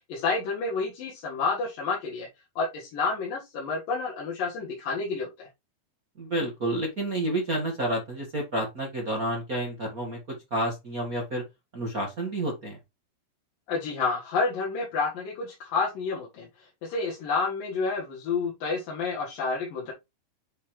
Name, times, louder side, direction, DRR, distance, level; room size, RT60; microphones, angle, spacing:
voice 1, 0.1-2.3 2.6-5.5 13.7-19.9, left 4 dB, 70° left, 3.3 m, -29 dB
voice 2, 6.2-10.2 10.5-11.4 11.7-12.8, right 1 dB, 35° right, 1.4 m, -29 dB
7.9 x 5.5 x 3.2 m
omnidirectional pair, 4.2 m